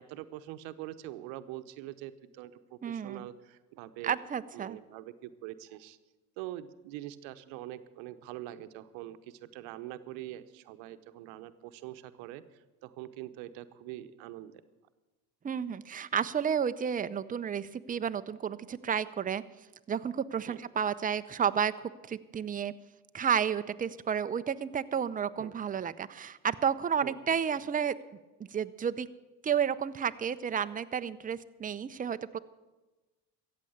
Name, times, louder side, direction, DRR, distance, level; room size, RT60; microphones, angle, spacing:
voice 1, 0.0-4.2 4.5-6.0 6.4-14.6 20.5-20.6 25.4-25.5 27.0-27.2, right 14 dB, 75° right, 11 dB, 0.9 m, -44 dB
voice 2, 2.8-3.3 4.0-4.8 15.4-19.4 19.9-22.7 23.1-27.9 28.5-29.1 29.4-32.4, right 7 dB, 20° right, 12 dB, 0.5 m, -31 dB
14.5 x 8.5 x 8.0 m, 1.2 s
hypercardioid pair, 65°, 47 cm